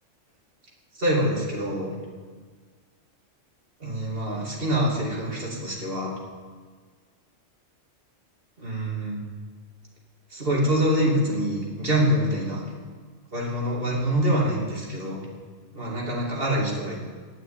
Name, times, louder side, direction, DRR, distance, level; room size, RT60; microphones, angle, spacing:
voice 1, 1.0-1.9 3.8-6.1 8.6-9.2 10.3-12.6 13.3-15.2 15.7-17.0, equal, 50° right, -3 dB, 3.1 m, -25 dB
11.0 x 9.0 x 8.9 m, 1.6 s
omnidirectional pair, 1.2 m